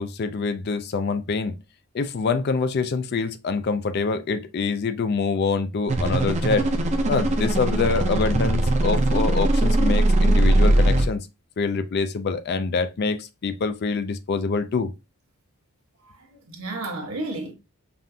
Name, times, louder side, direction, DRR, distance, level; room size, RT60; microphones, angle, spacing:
voice 1, 0.0-1.5 1.9-6.7 7.1-11.3 11.6-14.9, left 4 dB, 45° left, 0.4 m, -25 dB
sound 1, 5.9-11.0, right 1 dB, 30° right, 0.6 m, -20 dB
voice 2, 16.0-17.5, right 2 dB, 70° right, 1.2 m, -32 dB
5.4 x 2.5 x 2.7 m
head